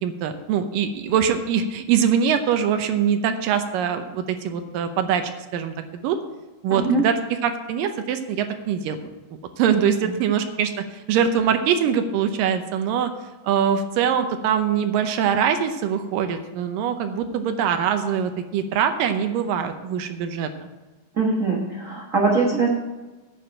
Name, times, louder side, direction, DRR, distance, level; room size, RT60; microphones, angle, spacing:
voice 1, 0.0-6.2 6.6-9.0 9.6-13.1 13.4-20.5, right 8 dB, 80° right, 7 dB, 2.4 m, -23 dB
voice 2, 6.7-7.1 10.0-10.2 21.2-22.7, right 3 dB, 55° right, -2 dB, 0.9 m, -22 dB
9.6 x 6.2 x 8.7 m, 1.2 s
omnidirectional pair, 3.9 m